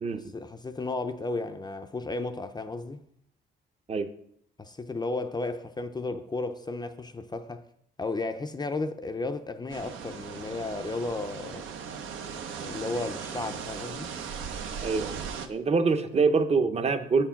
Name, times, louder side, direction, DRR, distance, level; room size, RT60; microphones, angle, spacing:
voice 1, 0.3-3.0 4.6-7.6 8.0-11.7 12.5-14.1, left 3 dB, 20° left, 0.5 m, -34 dB
sound 1, 9.7-15.5, right 6 dB, 80° right, 0.8 m, -38 dB
voice 2, 14.8-17.3, right 4 dB, 30° right, 0.7 m, -25 dB
6.9 x 4.6 x 5.8 m
cardioid pair, 90°, 20 cm